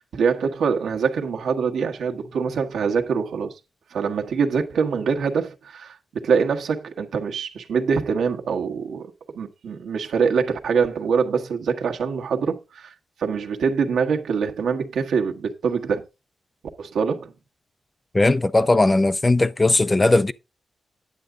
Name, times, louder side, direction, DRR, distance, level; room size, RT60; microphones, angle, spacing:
voice 1, 0.0-3.5 3.9-12.9 13.2-16.0 16.8-17.3, right 6 dB, 85° right, 1.4 m, -24 dB
voice 2, 18.1-20.3, left 2 dB, 15° left, 0.4 m, -18 dB
9.6 x 8.1 x 3.7 m
wide cardioid pair, 180°, 0 cm